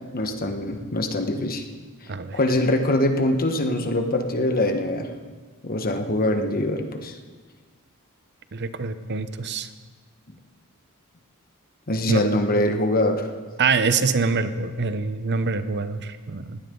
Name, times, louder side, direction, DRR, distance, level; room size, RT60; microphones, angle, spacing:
voice 1, 0.0-1.7 2.3-5.1 5.6-7.2 11.9-13.3, left 1 dB, 45° left, 5 dB, 1.4 m, -23 dB
voice 2, 2.1-2.4 8.5-9.7 12.1-12.2 13.6-16.6, right 4 dB, 50° right, 11 dB, 0.8 m, -25 dB
20.0 x 17.0 x 3.9 m, 1.5 s
head